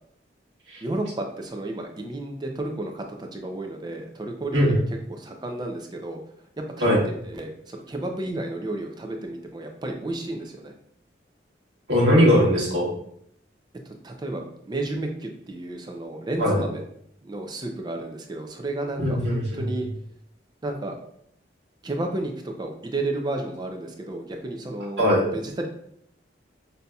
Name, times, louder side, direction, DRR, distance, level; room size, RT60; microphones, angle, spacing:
voice 1, 0.8-6.2 6.6-10.7 13.9-16.8 17.2-19.9 20.6-21.0 21.8-25.7, right 2 dB, 20° right, 3 dB, 0.4 m, -32 dB
voice 2, 11.9-12.9 16.4-16.6 19.0-19.6 25.0-25.2, equal, 75° right, -5 dB, 1.1 m, -20 dB
5.4 x 2.7 x 2.3 m, 0.71 s
head